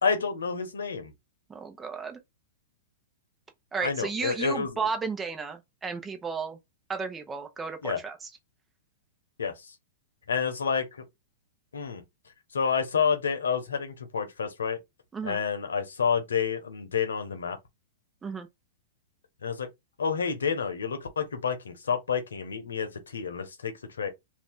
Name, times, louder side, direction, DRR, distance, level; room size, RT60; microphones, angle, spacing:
voice 1, 0.0-1.1 3.8-4.7 7.8-8.0 9.4-9.5 10.3-11.0 11.7-12.0 12.5-14.8 15.2-17.6 19.4-19.7 20.0-24.1, left 6 dB, 85° left, 1.0 m, -29 dB
voice 2, 1.5-2.2 3.7-6.6 6.9-8.3 15.1-15.4 18.2-18.5, right 5 dB, 15° right, 1.0 m, -33 dB
2.8 x 2.6 x 3.7 m
hypercardioid pair, 120°, 0 cm